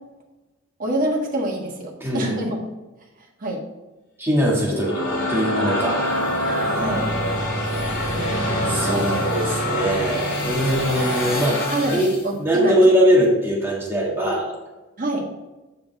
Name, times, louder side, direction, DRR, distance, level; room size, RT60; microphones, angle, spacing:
voice 1, 0.8-2.6 3.4-3.6 6.7-7.1 8.8-9.3 11.7-12.7 15.0-15.3, right 1 dB, 40° right, -2 dB, 1.6 m, -26 dB
voice 2, 2.0-2.4 4.2-6.2 8.7-12.1 12.4-14.5, equal, 10° right, -4 dB, 1.9 m, -21 dB
sound 1, 4.5-12.3, left 1 dB, 65° left, 2.4 m, -25 dB
7.4 x 6.8 x 3.5 m, 1.1 s
head